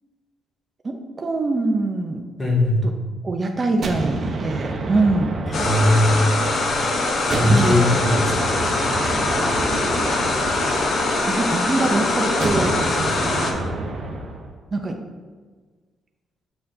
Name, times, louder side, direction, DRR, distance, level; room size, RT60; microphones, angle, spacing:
voice 1, 0.8-2.2 3.2-5.3 7.4-7.8 11.3-12.7 14.7-15.0, right 3 dB, 35° right, 3 dB, 0.6 m, -23 dB
voice 2, 2.4-2.8 5.5-6.2 7.3-8.5, left 1 dB, 25° left, -3 dB, 1.8 m, -19 dB
sound 1, 3.8-6.8 7.3-11.5 12.4-14.5, right 2 dB, 50° right, 0.9 m, -29 dB
sound 2, 5.5-13.5, left 2 dB, 60° left, 1.1 m, -22 dB
6.8 x 6.4 x 2.7 m, 1.4 s
cardioid pair, 90°, 0 cm